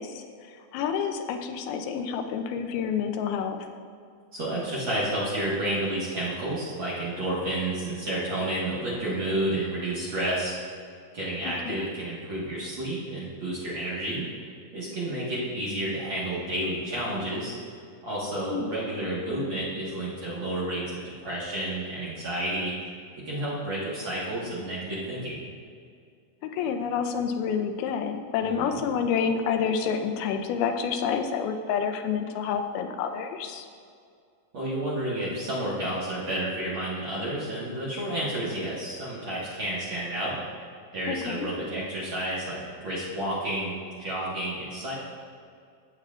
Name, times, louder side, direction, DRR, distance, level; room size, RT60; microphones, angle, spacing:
voice 1, 0.0-3.7 11.5-11.8 18.5-18.7 26.4-33.7 41.1-41.5, left 6 dB, 85° left, 5 dB, 2.6 m, -29 dB
voice 2, 4.3-10.5 11.1-14.3 14.7-17.5 18.0-22.7 23.2-25.4 28.4-28.8 34.5-40.4 40.9-44.9, right 1 dB, 50° right, -8 dB, 1.6 m, -30 dB
14.0 x 7.8 x 2.5 m, 2.3 s
omnidirectional pair, 4.3 m